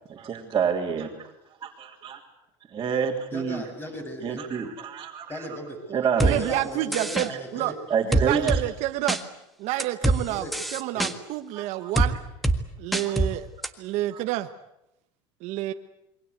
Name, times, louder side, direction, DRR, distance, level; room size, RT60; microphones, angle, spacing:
voice 1, 0.1-1.3 1.6-2.2 2.7-3.6 4.2-5.5 5.9-6.5 7.9-8.6 11.5-11.9 13.0-13.5 14.1-14.2, right 7 dB, 30° right, -4 dB, 3.3 m, -28 dB
voice 2, 3.3-4.4 5.3-6.0 6.4-7.8 10.3-10.5 10.9-11.1, equal, 15° left, 5 dB, 6.9 m, -37 dB
sound 1, 6.2-6.3 6.9-7.3 8.1-8.6 9.1-9.2 9.8-10.2 10.5-11.1 12.0-12.1 12.4-12.6 12.9-13.3 13.6-13.7, right 1 dB, ahead, 1.8 m, -23 dB
voice 3, 6.2-7.7 8.1-9.2 9.6-10.4 10.7-12.2 12.8-13.5 13.8-14.5 15.4-15.7, right 15 dB, 60° right, 8 dB, 1.4 m, -28 dB
27.5 x 23.5 x 8.2 m, 0.86 s
supercardioid pair, 135°, 13 cm